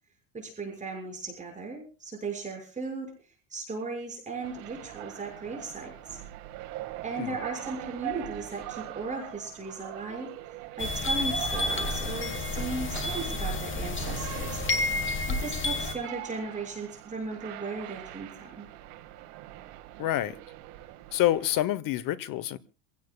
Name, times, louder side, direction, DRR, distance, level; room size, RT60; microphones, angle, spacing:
voice 1, 0.3-3.1 3.5-6.2 7.0-10.3 10.8-14.6 15.3-18.7, right 3 dB, 15° right, 6.4 m, -37 dB
sound 1, 4.4-21.6, right 15 dB, 70° right, 2.2 m, -42 dB
sound 2, 10.8-15.9, left 2 dB, 25° left, 2.2 m, -30 dB
voice 2, 20.0-20.4 21.1-22.6, left 13 dB, 45° left, 1.1 m, -27 dB
27.5 x 16.5 x 2.4 m
cardioid pair, 145°, 48 cm